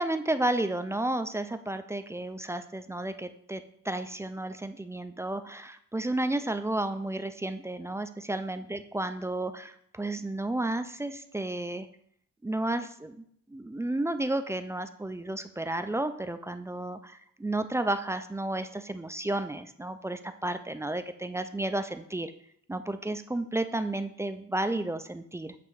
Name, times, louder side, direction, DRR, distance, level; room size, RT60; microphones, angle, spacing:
voice 1, 0.0-11.9 12.4-13.2 13.5-22.3 22.7-25.6, right 1 dB, 10° right, 9 dB, 0.3 m, -32 dB
7.5 x 3.0 x 4.6 m, 0.67 s
cardioid pair, 90°, 30 cm